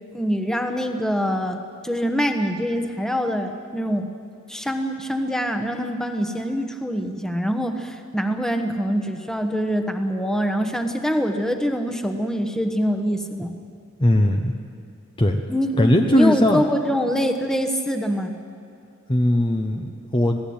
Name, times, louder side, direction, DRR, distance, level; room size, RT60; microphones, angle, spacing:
voice 1, 0.1-4.1 4.5-13.6 15.5-18.4, equal, ahead, 5 dB, 1.2 m, -24 dB
voice 2, 14.0-14.5 15.2-15.4 15.8-16.6 19.1-20.4, left 1 dB, 20° left, 3 dB, 0.9 m, -19 dB
26.0 x 18.0 x 8.8 m, 2.3 s
head